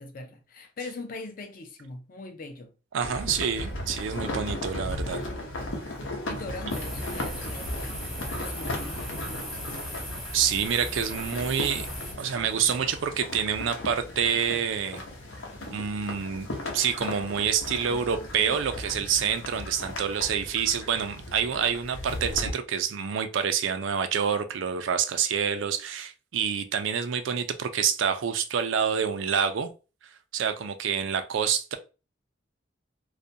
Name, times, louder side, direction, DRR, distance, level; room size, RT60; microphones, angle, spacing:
voice 1, 0.0-2.7 6.3-8.0 8.4-9.6, left 2 dB, 45° left, 0.5 m, -41 dB
voice 2, 2.9-5.2 10.3-11.9 12.2-15.0 15.6-29.7 30.3-31.8, right 7 dB, 75° right, 0.4 m, -27 dB
sound 1, 3.0-22.5, left 1 dB, 85° left, 0.8 m, -36 dB
sound 2, 6.7-12.1, equal, ahead, 0.6 m, -38 dB
2.4 x 2.1 x 2.7 m
head